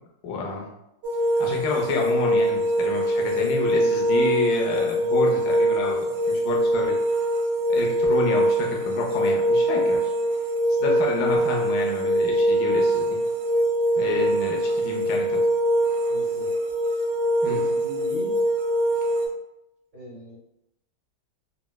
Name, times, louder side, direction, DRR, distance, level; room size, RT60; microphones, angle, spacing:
voice 1, 0.2-0.7 1.4-7.0 7.7-10.1 10.8-13.2 14.0-15.4 17.4-17.6, left 4 dB, 70° left, -1 dB, 1.0 m, -29 dB
sound 1, 1.0-19.3, right 1 dB, 85° right, 1.5 m, -23 dB
voice 2, 14.0-14.4 16.1-16.5 17.4-18.4 19.9-20.4, equal, 65° right, -8 dB, 0.7 m, -39 dB
4.3 x 2.0 x 2.2 m, 0.84 s
omnidirectional pair, 2.4 m